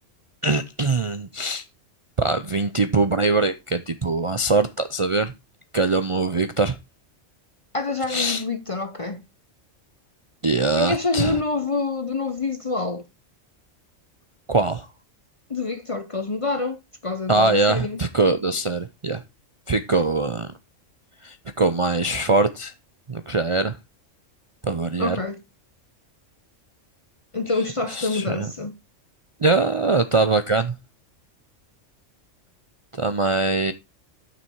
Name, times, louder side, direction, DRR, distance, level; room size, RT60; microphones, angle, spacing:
voice 1, 0.4-1.7 2.2-5.3 5.7-6.8 8.1-8.4 10.4-11.4 14.5-14.9 17.3-19.2 19.7-20.5 21.2-22.7 23.1-23.8 24.6-25.2 27.9-28.5 29.4-30.7 32.9-33.7, right 3 dB, 40° right, 0.5 m, -22 dB
voice 2, 7.7-9.2 10.8-13.0 15.5-18.0 25.0-25.4 27.3-28.7, left 3 dB, 35° left, 0.6 m, -27 dB
9.9 x 6.1 x 4.5 m
omnidirectional pair, 1.3 m